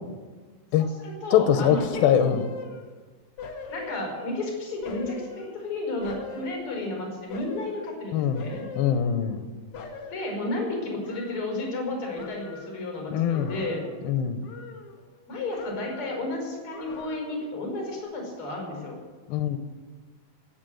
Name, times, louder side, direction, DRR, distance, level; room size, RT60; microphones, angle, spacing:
voice 1, 0.8-2.4 3.7-8.6 10.1-13.8 15.3-19.0, left 2 dB, 35° left, 1 dB, 5.8 m, -32 dB
voice 2, 1.3-2.5 8.1-8.4 8.8-9.4 13.1-13.5 14.0-14.4 19.3-19.6, left 9 dB, 90° left, 10 dB, 2.6 m, -23 dB
sound 1, 1.7-3.0 3.4-4.5 4.8-6.9 7.3-7.9 8.3-9.5 9.7-11.9 12.2-12.9 13.3-14.1 14.4-15.3 15.6-16.3 16.7-17.5 17.9-18.0, left 5 dB, 60° left, 1.5 m, -41 dB
16.5 x 8.5 x 7.8 m, 1.4 s
omnidirectional pair, 4.1 m